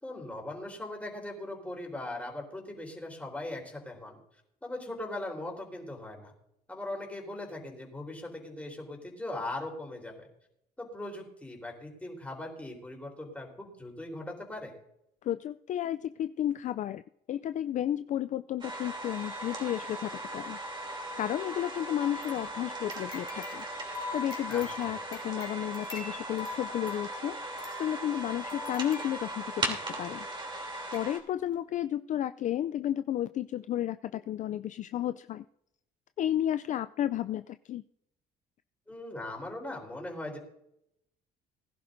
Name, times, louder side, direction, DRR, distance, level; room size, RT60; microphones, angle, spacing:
voice 1, 0.0-4.2 4.6-6.3 6.7-10.3 10.8-14.7 24.5-25.0 38.9-40.4, left 1 dB, 10° left, 0 dB, 3.9 m, -40 dB
voice 2, 15.2-17.0 17.3-20.6 21.2-23.6 24.1-30.3 30.9-35.4 36.2-37.8, left 11 dB, 45° left, 12 dB, 0.4 m, -32 dB
sound 1, 18.6-31.2, right 1 dB, 30° right, 3.0 m, -38 dB
sound 2, 22.0-29.7 30.4-30.5 30.9-31.1 31.4-31.5, left 4 dB, 25° left, 2.7 m, -44 dB
20.5 x 11.0 x 2.6 m, 0.78 s
cardioid pair, 110°, 17 cm